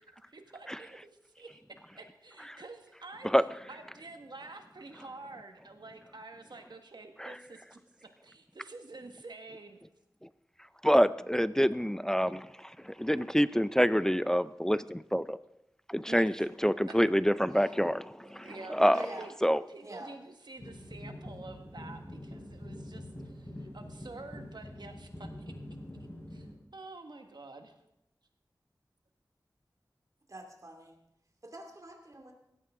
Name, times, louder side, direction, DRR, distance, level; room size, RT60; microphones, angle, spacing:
voice 1, 0.1-1.6 1.9-3.3 3.7-7.8 8.2-9.8 16.1-16.5 17.5-17.7 18.2-19.3 19.7-25.5 26.3-26.5 26.7-27.7, right 3 dB, 70° right, 5 dB, 1.6 m, -48 dB
voice 2, 10.8-15.4 15.9-19.0 19.4-19.6, equal, 5° left, 15 dB, 0.4 m, -27 dB
voice 3, 18.9-19.3 19.8-20.1 30.3-31.0 31.4-32.3, right 1 dB, 45° right, 2 dB, 2.4 m, -45 dB
sound 1, 20.6-26.5, left 1 dB, 30° left, 5.2 m, -45 dB
16.5 x 13.5 x 3.7 m, 0.84 s
wide cardioid pair, 55°, 8 cm